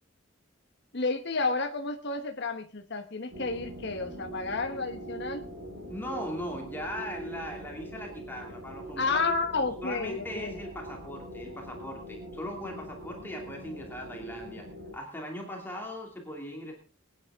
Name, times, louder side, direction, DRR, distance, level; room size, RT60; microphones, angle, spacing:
voice 1, 0.9-5.4 9.0-10.5, left 3 dB, 55° left, 4 dB, 1.2 m, -31 dB
sound 1, 3.3-15.0, right 1 dB, 80° right, 6.1 m, -43 dB
voice 2, 5.9-9.2 9.5-14.7 14.9-16.7, equal, 10° left, 0 dB, 2.7 m, -39 dB
24.0 x 9.6 x 3.7 m, 0.37 s
head